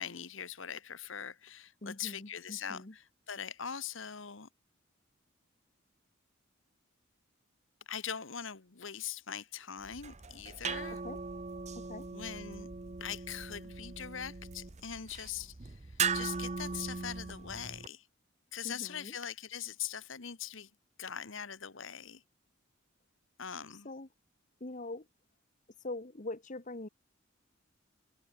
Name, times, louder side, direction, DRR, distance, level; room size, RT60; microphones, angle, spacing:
voice 1, 0.0-4.5 7.9-11.0 12.1-12.7 13.0-18.1 18.5-20.7 21.0-22.2 23.4-23.9, left 8 dB, 70° left, 1.4 m, -42 dB
voice 2, 1.8-2.9 10.9-11.2 11.8-12.1 18.6-19.2 23.7-24.1 24.6-25.1 25.8-26.9, left 2 dB, 40° left, 1.4 m, -43 dB
sound 1, 9.8-17.9, right 5 dB, 35° right, 0.8 m, -39 dB
head